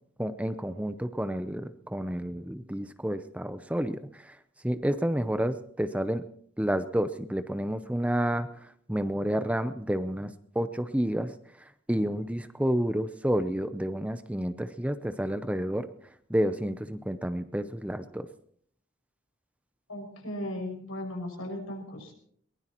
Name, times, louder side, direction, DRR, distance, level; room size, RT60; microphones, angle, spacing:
voice 1, 0.2-4.4 4.6-6.2 6.6-8.5 8.9-15.9 16.3-18.3, equal, 5° right, 10 dB, 0.6 m, -30 dB
voice 2, 19.9-22.1, left 1 dB, 90° left, 1 dB, 6.1 m, -36 dB
22.0 x 19.5 x 3.0 m, 0.63 s
head